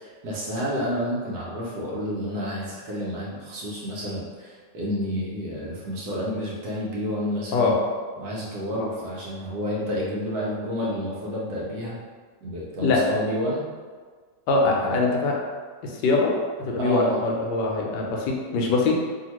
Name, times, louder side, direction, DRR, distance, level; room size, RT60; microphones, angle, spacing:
voice 1, 0.0-7.8 8.2-12.0 12.4-13.6 14.6-15.0 16.8-17.2, equal, 70° right, -5 dB, 1.1 m, -30 dB
voice 2, 14.5-15.3 15.8-16.3 16.6-19.0, left 3 dB, 80° left, -1 dB, 1.2 m, -23 dB
2.8 x 2.7 x 2.9 m, 1.5 s
omnidirectional pair, 1.9 m